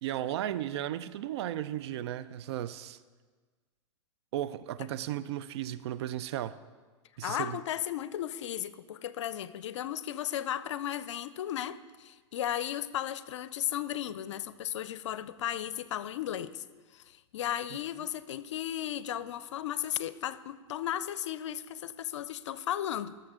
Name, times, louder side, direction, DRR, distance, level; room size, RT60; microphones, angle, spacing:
voice 1, 0.0-3.0 4.3-6.6 7.2-7.6, right 12 dB, 65° right, 0.5 m, -35 dB
voice 2, 7.2-16.6 16.9-23.2, left 11 dB, 75° left, 0.5 m, -35 dB
18.5 x 6.8 x 3.7 m
hypercardioid pair, 110°, 15 cm